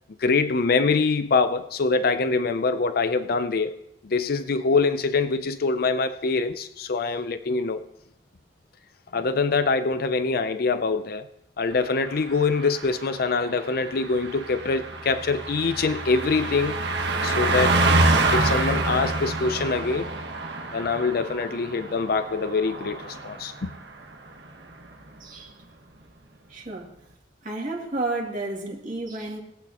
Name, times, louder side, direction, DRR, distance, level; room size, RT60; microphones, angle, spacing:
voice 1, 0.2-3.8 4.0-7.8 9.1-11.2 11.6-16.8 17.2-17.8 18.3-20.1 20.7-23.7, left 4 dB, 55° left, 0.5 m, -24 dB
Car passing by, 11.8-23.7 24.0-24.3, right 2 dB, 70° right, 1.3 m, -27 dB
voice 2, 25.2-25.5 26.5-26.9 27.4-29.4, right 2 dB, 50° right, 2.3 m, -31 dB
21.5 x 8.5 x 2.9 m
head